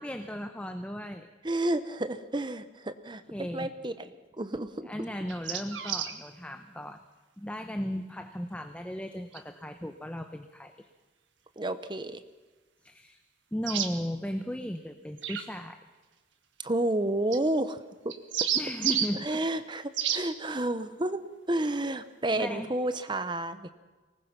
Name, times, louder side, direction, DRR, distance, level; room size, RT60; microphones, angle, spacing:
voice 1, 0.0-1.3 3.3-3.7 4.8-7.0 7.4-10.9 12.8-13.2 13.5-15.8 18.5-19.6 22.3-22.7, equal, 5° left, 7 dB, 0.8 m, -36 dB
voice 2, 1.4-3.2 3.5-4.1 4.4-4.9 11.6-12.2 16.6-17.8 19.2-19.8 20.1-21.2 21.5-23.7, right 1 dB, 25° right, 11 dB, 0.9 m, -30 dB
sound 1, 5.3-6.1 9.3-9.4 13.7-13.9 15.2-15.4 17.3-17.4 18.1-19.1 19.9-20.2, right 9 dB, 85° right, 1.8 m, -30 dB
24.5 x 19.5 x 6.0 m, 1.3 s
head